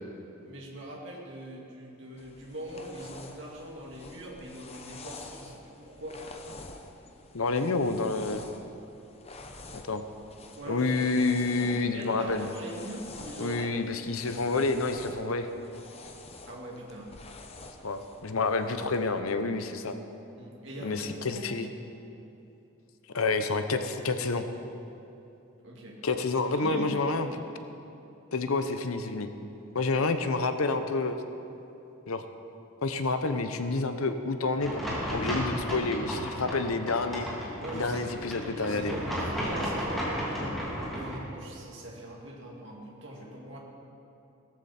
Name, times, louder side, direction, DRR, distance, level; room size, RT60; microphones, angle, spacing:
voice 1, 0.4-6.2 10.6-10.9 11.3-13.7 14.0-14.3 16.5-17.1 20.3-21.0 21.3-21.7 25.6-26.0 26.6-27.2 29.8-30.0 37.6-40.3 40.9-43.6, right 1 dB, 55° right, -3 dB, 2.5 m, -42 dB
sound 1, 2.2-19.2, left 3 dB, 30° left, 0.8 m, -48 dB
voice 2, 7.3-8.5 9.7-10.0 10.7-12.5 13.4-15.5 17.8-19.9 20.8-21.7 23.1-24.4 26.0-27.5 28.3-29.3 29.7-31.2 32.1-32.3 32.8-37.3 37.7-38.9, left 3 dB, 80° left, 8 dB, 0.8 m, -29 dB
sound 2, 34.6-41.2, equal, ahead, 2.8 m, -33 dB
17.0 x 14.0 x 4.3 m, 2.9 s
head